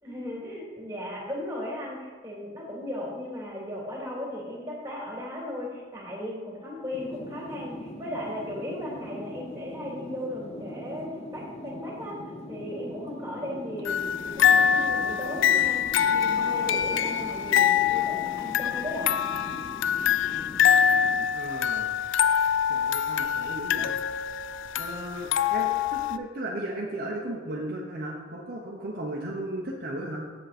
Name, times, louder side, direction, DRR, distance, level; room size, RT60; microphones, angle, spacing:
voice 1, 0.0-12.2 12.5-19.1, left 1 dB, 15° right, -3 dB, 2.6 m, -36 dB
sound 1, 6.9-21.3, left 1 dB, 35° left, 0.7 m, -41 dB
sound 2, 13.9-26.2, left 8 dB, 70° left, 0.3 m, -24 dB
voice 2, 21.3-22.0 22.7-23.9 24.8-30.2, right 1 dB, 50° right, -2 dB, 1.0 m, -35 dB
8.0 x 7.6 x 4.2 m, 1.5 s
head